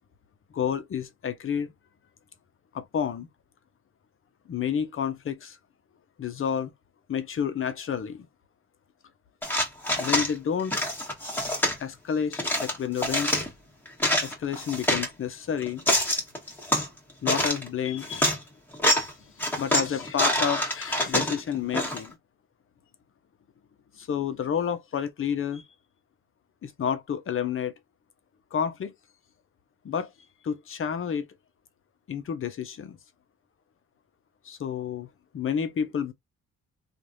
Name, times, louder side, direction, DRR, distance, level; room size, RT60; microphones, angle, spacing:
voice 1, 0.5-1.7 2.7-3.3 4.5-5.6 6.2-6.7 7.1-8.3 10.0-10.8 11.8-13.3 14.2-15.8 17.2-18.4 19.5-22.2 24.0-25.6 26.6-27.7 28.5-28.9 29.8-30.1 30.4-31.3 32.1-33.0 34.4-35.1 35.3-36.1, left 8 dB, 45° left, 0.8 m, -30 dB
sound 1, 9.4-10.3 10.7-11.8 12.3-13.5 13.9-15.1 15.6-16.9 17.3-17.7 18.0-18.4 18.7-19.1 19.4-22.1, left 1 dB, 5° left, 1.5 m, -26 dB
3.1 x 2.5 x 2.6 m
cardioid pair, 90°, 30 cm